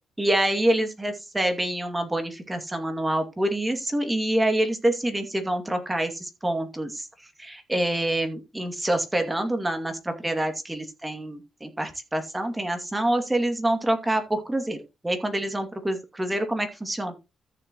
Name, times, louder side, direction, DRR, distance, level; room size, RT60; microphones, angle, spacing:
voice 1, 0.2-14.8 15.0-17.2, right 1 dB, 15° right, 5 dB, 2.4 m, -26 dB
14.0 x 6.9 x 3.1 m, 0.26 s
cardioid pair, 100°, 0 cm